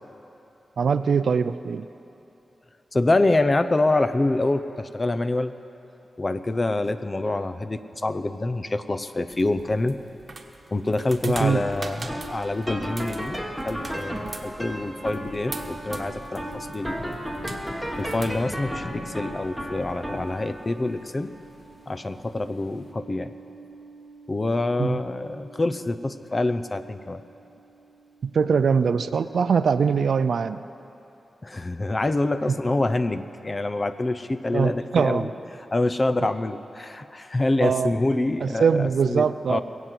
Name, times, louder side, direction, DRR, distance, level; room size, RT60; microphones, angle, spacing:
voice 1, 0.8-1.9 11.2-11.6 24.8-25.0 28.2-30.6 34.5-35.3 36.2-36.3 37.6-38.0 38.4-39.6, right 6 dB, 80° right, 13 dB, 0.4 m, -22 dB
voice 2, 2.9-5.5 6.2-10.0 10.7-17.2 18.0-21.3 21.9-23.3 24.3-27.2 31.4-35.3 35.7-39.6, left 2 dB, 30° left, 11 dB, 0.6 m, -26 dB
sound 1, 9.3-18.3, right 3 dB, 45° right, 1.2 m, -43 dB
sound 2, 11.3-28.5, equal, ahead, 1.7 m, -36 dB
sound 3, 14.6-22.9, left 1 dB, 50° left, 2.0 m, -45 dB
20.5 x 8.2 x 7.7 m, 2.9 s
cardioid pair, 80°, 0 cm